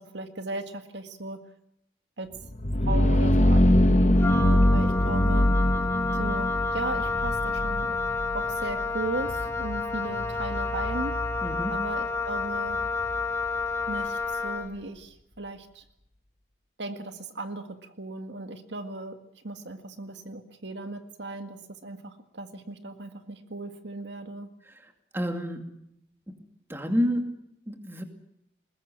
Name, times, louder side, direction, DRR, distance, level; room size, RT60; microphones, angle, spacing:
voice 1, 0.0-1.4 2.2-2.3 2.8-5.5 6.1-8.0 8.3-11.1 11.7-12.8 13.9-15.8 16.8-19.2 19.4-24.5, right 2 dB, 80° right, 7 dB, 2.0 m, -37 dB
sound 1, 2.4-14.0, left 1 dB, 40° left, 1.2 m, -24 dB
Wind instrument woodwind instrument, 4.2-14.7, left 3 dB, 15° left, 2.2 m, -30 dB
voice 2, 11.4-11.8 24.6-26.0 26.3-26.4 26.7-28.0, equal, 15° right, 5 dB, 2.4 m, -30 dB
21.0 x 20.5 x 7.6 m, 0.76 s
head